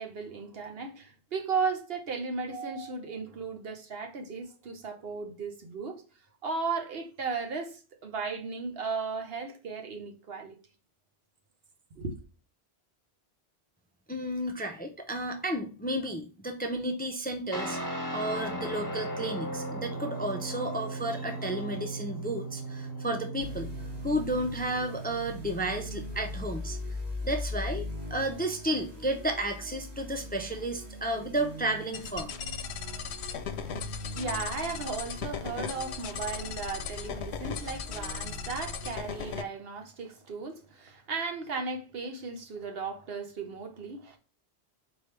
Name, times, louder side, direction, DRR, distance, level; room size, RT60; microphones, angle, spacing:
voice 1, 0.0-6.0 6.4-10.6 12.0-12.2 34.1-44.2, right 4 dB, 65° right, 1.1 m, -35 dB
voice 2, 14.1-23.7 24.0-26.8 27.2-27.8 28.1-32.3, right 1 dB, 10° left, 0.5 m, -32 dB
Guitar, 17.5-26.4, right 1 dB, 40° left, 1.5 m, -37 dB
sound 1, 23.4-39.4, left 2 dB, 40° right, 1.9 m, -41 dB
sound 2, 31.9-39.4, left 7 dB, 85° left, 0.9 m, -37 dB
4.4 x 3.3 x 3.3 m
omnidirectional pair, 1.1 m